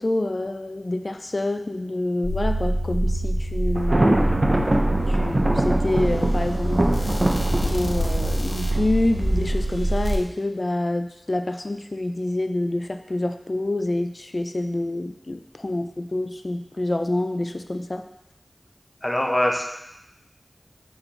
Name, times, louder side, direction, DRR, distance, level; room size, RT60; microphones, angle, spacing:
voice 1, 0.0-4.1 5.1-18.0, left 2 dB, 60° left, 7 dB, 0.4 m, -27 dB
sound 1, 2.2-10.2, right 1 dB, 75° left, 0.8 m, -24 dB
Thunder, 3.8-9.6, right 1 dB, 50° right, 0.7 m, -24 dB
voice 2, 19.0-19.6, left 1 dB, 25° left, 1 dB, 0.8 m, -22 dB
7.4 x 3.9 x 3.4 m, 0.84 s
wide cardioid pair, 45°, 0 cm